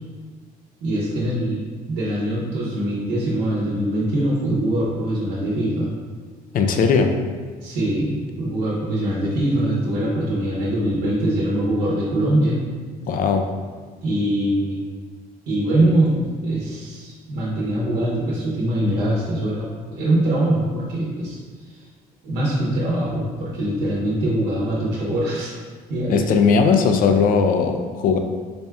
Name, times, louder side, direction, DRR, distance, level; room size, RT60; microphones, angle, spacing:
voice 1, 0.8-5.9 7.6-12.6 14.0-14.8 15.5-21.4 21.6-21.8 22.2-25.5 25.9-26.2, right 1 dB, 80° right, -6 dB, 0.9 m, -23 dB
voice 2, 6.5-7.1 13.0-13.5 26.1-28.2, left 5 dB, 55° left, 5 dB, 0.4 m, -18 dB
4.1 x 2.2 x 3.4 m, 1.5 s
cardioid pair, 110°, 17 cm